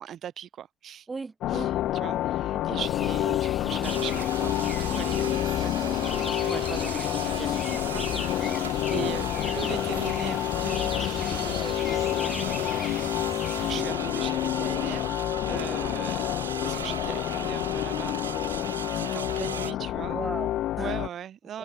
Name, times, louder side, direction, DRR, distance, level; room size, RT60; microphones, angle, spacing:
voice 1, 0.0-1.1 1.5-1.7 2.0-15.1 15.5-16.2 16.6-18.2 18.5-18.6 18.9-20.2 20.8-21.6, right 10 dB, 50° right, 2.7 m, -40 dB
voice 2, 1.1-1.7 2.5-2.8 3.2-3.4 9.0-9.2 13.7-14.0 20.1-21.1 21.5-21.6, right 4 dB, 25° right, 0.8 m, -38 dB
sound 1, 1.4-21.1, left 14 dB, 60° left, 0.3 m, -28 dB
sound 2, 2.8-13.8, left 5 dB, 30° left, 1.8 m, -39 dB
sound 3, 3.8-19.7, right 8 dB, 85° right, 1.2 m, -38 dB
figure-of-eight pair, 50°, 0 cm